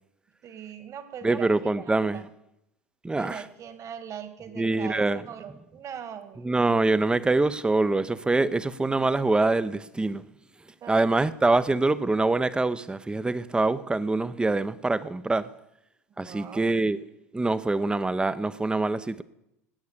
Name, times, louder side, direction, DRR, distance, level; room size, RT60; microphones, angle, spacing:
voice 1, 0.4-2.3 3.1-6.4 10.8-11.2 16.2-16.7, right 8 dB, 40° right, 1.9 m, -41 dB
voice 2, 1.2-2.2 3.0-3.4 4.6-5.2 6.4-10.2 10.9-15.5 16.2-17.0 17.3-19.2, right 2 dB, 10° right, 0.7 m, -24 dB
19.0 x 8.5 x 6.6 m
figure-of-eight pair, 75°, 8 cm